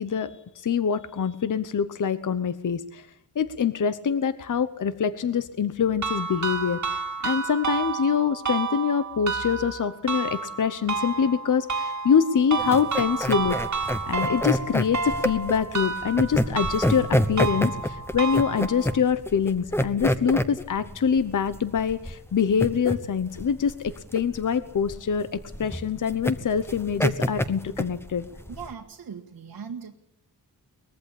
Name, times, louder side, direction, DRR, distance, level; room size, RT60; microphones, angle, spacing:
voice 1, 0.0-3.1 3.3-13.6 14.0-28.3, left 7 dB, 55° left, 12 dB, 1.0 m, -25 dB
sound 1, 6.0-19.0, right 5 dB, 50° right, 2.0 m, -30 dB
sound 2, 12.6-28.7, equal, 5° left, 1.0 m, -28 dB
voice 2, 28.5-29.9, right 6 dB, 80° right, 1 dB, 1.8 m, -39 dB
23.5 x 21.0 x 8.4 m, 0.75 s
wide cardioid pair, 175°, 37 cm